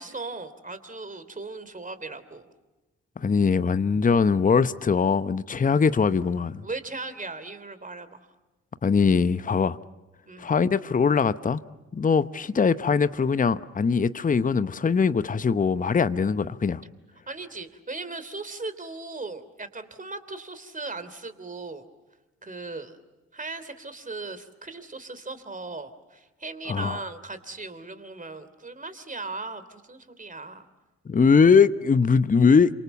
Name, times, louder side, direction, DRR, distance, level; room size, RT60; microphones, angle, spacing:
voice 1, 0.0-2.5 6.6-8.3 10.3-10.5 17.3-21.8 22.4-23.0 23.3-30.7, right 3 dB, 25° right, 3.2 m, -38 dB
voice 2, 3.2-6.6 8.8-9.8 10.4-11.6 11.9-16.8 26.7-27.0 31.1-32.7, left 5 dB, 25° left, 0.9 m, -21 dB
28.5 x 26.5 x 7.0 m
figure-of-eight pair, 40°, 34 cm